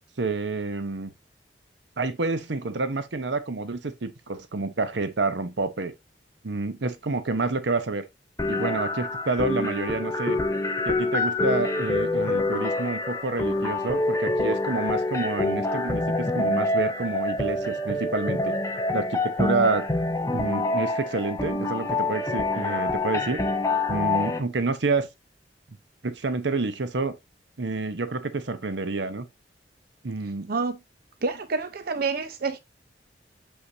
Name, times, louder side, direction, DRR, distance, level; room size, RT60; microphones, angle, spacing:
voice 1, 0.2-1.1 2.0-5.9 6.4-8.0 8.5-10.4 10.9-18.6 18.9-19.8 20.3-23.4 23.9-25.1 26.0-27.2 27.6-29.3 30.0-30.5, right 3 dB, 90° right, 0.9 m, -28 dB
sound 1, 8.4-24.4, left 2 dB, 20° left, 1.0 m, -26 dB
voice 2, 31.2-32.6, right 4 dB, 60° right, 0.6 m, -28 dB
6.4 x 5.6 x 2.8 m
head